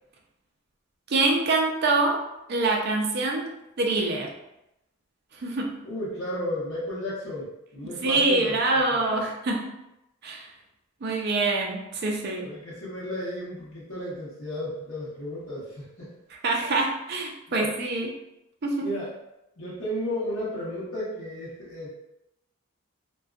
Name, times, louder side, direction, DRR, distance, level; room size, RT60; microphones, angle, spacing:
voice 1, 1.1-2.2 2.5-3.5 3.8-4.3 5.4-5.8 7.8-9.7 10.2-10.5 11.0-12.5 16.3-18.2 18.6-18.9, right 2 dB, 50° right, 0 dB, 0.4 m, -25 dB
voice 2, 5.8-8.6 8.9-9.2 12.4-16.1 17.5-17.7 18.8-19.1 19.6-21.9, equal, 80° left, -9 dB, 0.9 m, -33 dB
2.5 x 2.3 x 2.3 m, 0.88 s
head